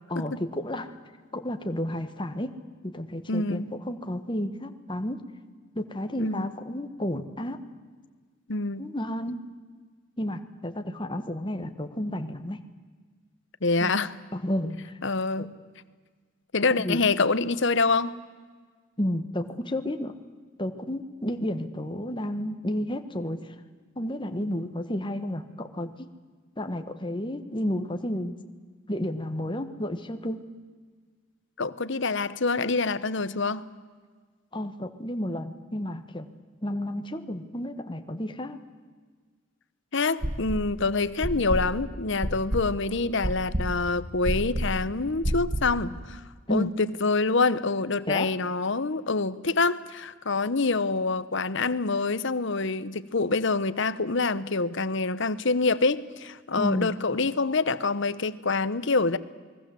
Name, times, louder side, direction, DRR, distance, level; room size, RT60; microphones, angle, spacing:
voice 1, 0.1-0.9 1.3-2.6 2.8-5.2 5.7-7.6 8.8-9.4 10.2-12.6 13.8-14.0 14.3-14.9 15.4-15.5 16.8-17.1 19.0-20.2 20.6-23.5 24.0-26.1 26.6-28.3 28.9-30.4 34.5-36.3 36.6-38.6 46.5-46.7 48.1-48.3 56.6-57.0, left 1 dB, 25° left, 7 dB, 1.4 m, -31 dB
voice 2, 3.3-3.7 6.2-6.5 8.5-8.9 13.6-14.1 15.0-15.5 16.5-18.2 31.6-33.6 39.9-46.2 46.5-59.2, left 3 dB, 60° left, 16 dB, 1.0 m, -26 dB
sound 1, 40.2-40.8 41.2-45.8, equal, 40° right, 1.9 m, -29 dB
29.0 x 21.0 x 7.8 m, 1.5 s
head